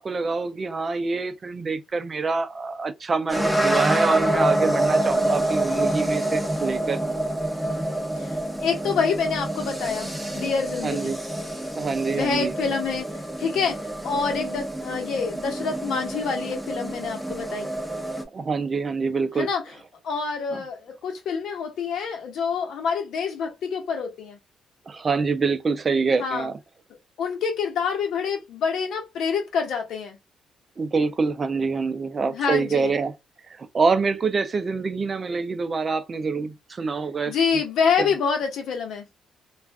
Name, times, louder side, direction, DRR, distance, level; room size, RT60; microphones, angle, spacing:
voice 1, 0.0-7.0 10.8-11.2 11.7-12.5 18.3-19.5 20.5-20.6 24.9-26.6 30.8-33.1 33.6-37.3 38.0-38.1, right 4 dB, 40° right, 0.5 m, -25 dB
sound 1, 3.3-18.2, right 1 dB, ahead, 0.8 m, -27 dB
voice 2, 8.2-11.1 12.1-13.1 13.4-13.8 14.0-17.7 19.4-19.6 20.0-24.4 26.2-26.5 27.2-30.2 32.3-32.9 37.3-39.0, left 6 dB, 75° left, 1.1 m, -27 dB
2.5 x 2.3 x 3.5 m
cardioid pair, 90°, 0 cm